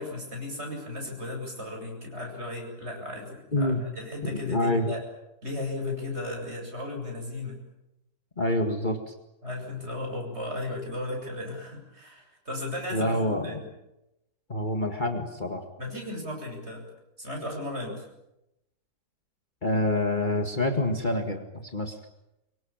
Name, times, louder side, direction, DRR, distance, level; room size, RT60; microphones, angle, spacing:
voice 1, 0.0-5.0 5.4-7.6 9.4-13.7 15.8-16.8 17.2-18.0, left 2 dB, 40° right, 1 dB, 8.2 m, -35 dB
voice 2, 4.2-5.0 8.4-9.2 12.9-13.6 14.5-15.6 19.6-22.0, left 1 dB, 30° left, 4 dB, 2.1 m, -27 dB
26.0 x 23.5 x 8.9 m, 0.91 s
omnidirectional pair, 1.7 m